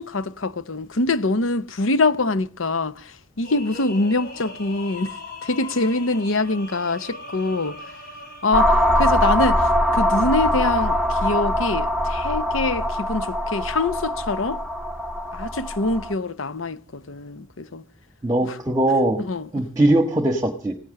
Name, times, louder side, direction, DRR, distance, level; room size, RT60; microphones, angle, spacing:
voice 1, 0.0-5.1 5.4-7.8 8.4-14.6 15.3-17.8 18.5-18.6 19.2-19.5, left 2 dB, 70° left, 0.9 m, -24 dB
sound 1, 3.4-8.7 10.8-11.3, left 3 dB, 50° left, 3.2 m, -39 dB
sound 2, 8.5-16.1, equal, ahead, 1.0 m, -22 dB
voice 2, 18.2-19.2 19.5-20.7, right 1 dB, 15° right, 1.3 m, -20 dB
17.0 x 10.5 x 7.6 m
head